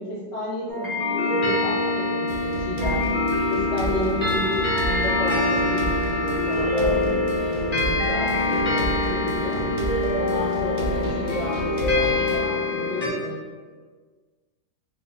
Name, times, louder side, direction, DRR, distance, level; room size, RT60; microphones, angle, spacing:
voice 1, 0.0-3.0 3.5-6.9 7.4-9.6 10.1-13.4, left 1 dB, 75° left, -7 dB, 1.7 m, -32 dB
sound 1, 0.7-13.1, left 2 dB, 35° left, 0.7 m, -24 dB
sound 2, 2.3-12.4, right 3 dB, 70° right, 1.0 m, -32 dB
5.0 x 2.0 x 3.4 m, 1.5 s
omnidirectional pair, 2.0 m